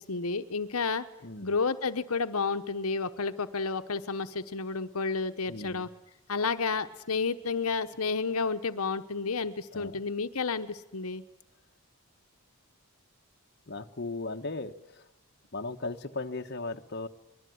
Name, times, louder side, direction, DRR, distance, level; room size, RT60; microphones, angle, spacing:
voice 1, 0.0-1.1 1.4-5.9 6.3-11.2, left 4 dB, 80° left, 9 dB, 1.1 m, -31 dB
voice 2, 1.2-1.5 5.5-5.9 9.7-10.0 13.7-15.0 15.5-17.1, left 3 dB, 50° left, 6 dB, 1.2 m, -37 dB
24.5 x 21.5 x 9.4 m, 0.90 s
head